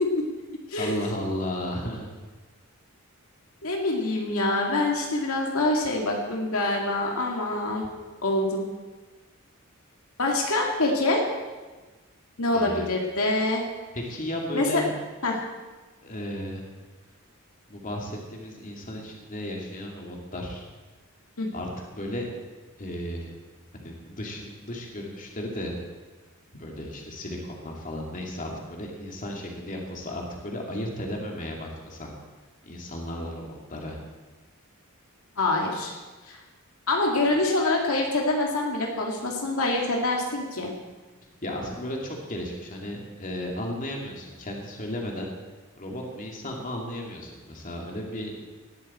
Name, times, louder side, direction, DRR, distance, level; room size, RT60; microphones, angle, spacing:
voice 1, 0.8-2.1 12.5-12.9 13.9-14.9 16.0-16.6 17.7-20.6 21.5-22.3 22.8-23.3 23.7-25.7 26.6-32.1 32.6-34.0 41.4-45.3 45.8-48.4, left 1 dB, 40° left, 0 dB, 2.4 m, -34 dB
voice 2, 3.6-7.9 8.2-8.7 10.2-11.2 12.4-13.6 14.5-14.8 15.2-15.4 21.4-21.5 35.4-35.9 36.3-36.4 36.9-40.7, left 2 dB, 75° left, 0 dB, 2.2 m, -25 dB
18.5 x 12.5 x 4.3 m, 1.3 s
head